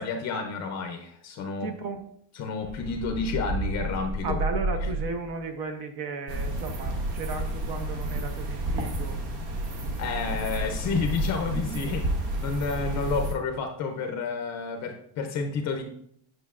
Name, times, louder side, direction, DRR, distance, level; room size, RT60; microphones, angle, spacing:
voice 1, 0.0-1.7 2.3-4.4 4.8-4.9 10.0-15.8, left 4 dB, 40° left, 5 dB, 0.5 m, -30 dB
voice 2, 1.6-2.1 4.2-9.2 11.5-11.8, right 4 dB, 55° right, 5 dB, 0.8 m, -35 dB
sound 1, 2.6-5.4, right 1 dB, 35° right, 1.4 m, -31 dB
sound 2, 6.3-13.3, right 1 dB, 70° right, 1.4 m, -31 dB
9.3 x 6.3 x 2.4 m, 0.69 s
cardioid pair, 175°, 44 cm